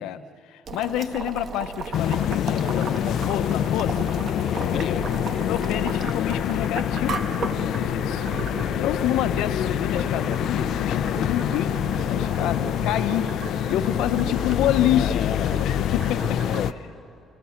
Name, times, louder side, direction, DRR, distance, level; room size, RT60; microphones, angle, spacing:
voice 1, 0.0-4.1 5.4-7.2 7.4-8.3 8.6-16.2 16.8-16.9, left 11 dB, 90° left, 10 dB, 0.9 m, -28 dB
Boiling, 0.7-16.7, right 5 dB, 50° right, 1.5 m, -35 dB
sound 1, 1.9-16.7, left 10 dB, 65° left, 0.6 m, -26 dB
voice 2, 16.0-17.2, left 1 dB, 5° left, 0 dB, 4.3 m, -53 dB
29.5 x 27.5 x 5.9 m, 2.4 s
cardioid pair, 125°, 0 cm